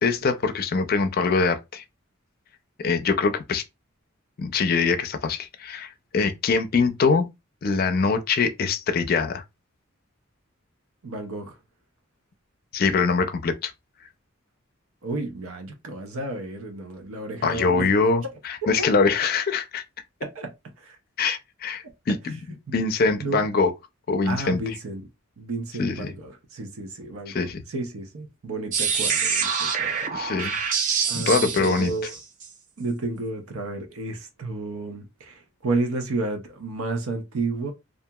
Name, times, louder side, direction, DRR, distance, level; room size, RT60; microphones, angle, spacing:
voice 1, 0.0-1.8 2.8-3.6 4.4-7.3 7.6-9.4 12.7-13.7 17.4-19.8 21.2-22.4 22.7-23.7 24.1-24.6 25.8-26.1 27.3-27.6 30.1-30.8 31.1-31.9, left 4 dB, 45° left, 0.4 m, -23 dB
voice 2, 11.0-11.6 15.0-17.9 18.6-18.9 20.2-20.5 20.8-21.0 22.7-22.8 23.2-23.5 24.2-25.1 25.4-30.5 31.1-32.1 32.8-37.7, right 3 dB, 90° right, 0.6 m, -32 dB
sound 1, 28.7-32.5, right 6 dB, 40° right, 0.4 m, -26 dB
2.8 x 2.4 x 2.2 m
head